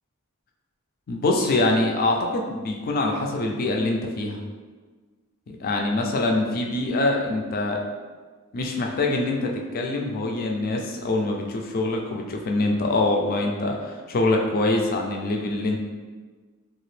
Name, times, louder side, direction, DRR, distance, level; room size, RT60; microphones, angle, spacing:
voice 1, 1.1-4.4 5.5-7.8 8.5-15.8, left 2 dB, 40° left, 1 dB, 0.3 m, -24 dB
2.8 x 2.4 x 3.2 m, 1.4 s
head